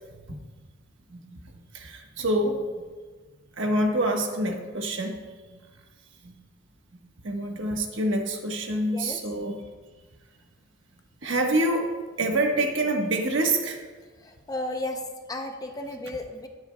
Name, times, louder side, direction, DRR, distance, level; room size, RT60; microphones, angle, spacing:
voice 1, 1.7-2.6 3.6-5.2 5.5-5.6 6.2-6.3 7.2-9.6 11.2-11.9 12.2-13.8, right 1 dB, 65° right, 3 dB, 1.2 m, -26 dB
voice 2, 14.2-16.5, left 1 dB, 15° left, 4 dB, 0.6 m, -34 dB
18.5 x 8.4 x 2.2 m, 1.4 s
head